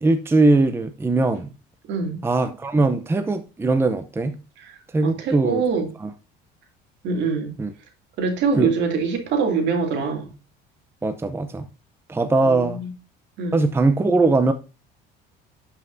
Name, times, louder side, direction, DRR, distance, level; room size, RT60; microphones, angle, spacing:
voice 1, 0.0-1.5 2.2-4.4 4.9-5.6 6.0-6.1 7.6-7.7 8.6-8.7 11.0-11.7 12.1-12.8 13.5-14.5, right 2 dB, 10° right, 0.7 m, -20 dB
voice 2, 1.9-2.2 4.6-5.9 7.0-7.5 8.2-10.3 12.4-12.9 13.4-13.6, right 5 dB, 65° right, 2.7 m, -24 dB
12.0 x 5.7 x 2.7 m
cardioid pair, 120°, 20 cm